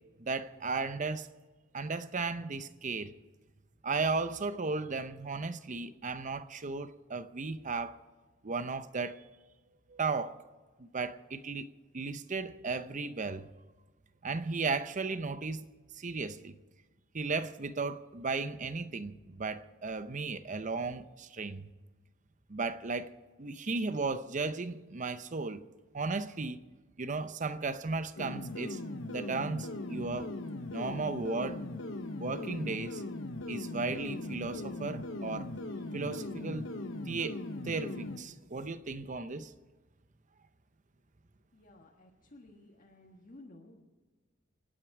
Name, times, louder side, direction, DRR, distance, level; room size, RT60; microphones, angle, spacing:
voice 1, 0.2-1.3 1.7-3.1 3.8-8.0 8.4-9.2 9.9-10.4 10.8-11.7 11.9-13.5 14.2-15.7 15.9-16.5 17.1-21.7 22.5-23.1 23.4-25.6 25.9-26.6 27.0-28.8 29.1-30.3 30.7-31.6 32.2-33.0 33.5-35.5 35.9-36.7 37.1-37.4 37.6-39.5, right 4 dB, 40° right, 0.7 m, -35 dB
sound 1, 28.2-38.2, left 2 dB, 70° left, 1.0 m, -39 dB
voice 2, 41.5-43.8, left 1 dB, 45° left, 1.5 m, -55 dB
27.5 x 9.2 x 4.8 m
head